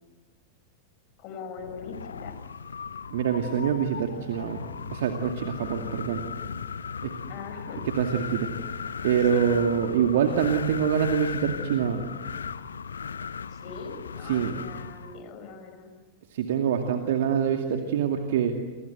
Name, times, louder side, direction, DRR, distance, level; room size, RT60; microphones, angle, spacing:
voice 1, 1.2-2.3 7.3-7.8 9.3-9.5 13.5-15.9, left 5 dB, 40° left, 8 dB, 6.2 m, -41 dB
Wind, 1.6-15.2, left 6 dB, 70° left, 0.9 m, -37 dB
voice 2, 3.1-4.6 4.9-6.2 7.0-7.1 8.0-8.5 9.0-12.1 14.2-14.6 16.3-18.5, right 8 dB, 55° right, 4 dB, 2.4 m, -25 dB
29.5 x 25.5 x 8.0 m, 1.3 s
figure-of-eight pair, 90°, 0 cm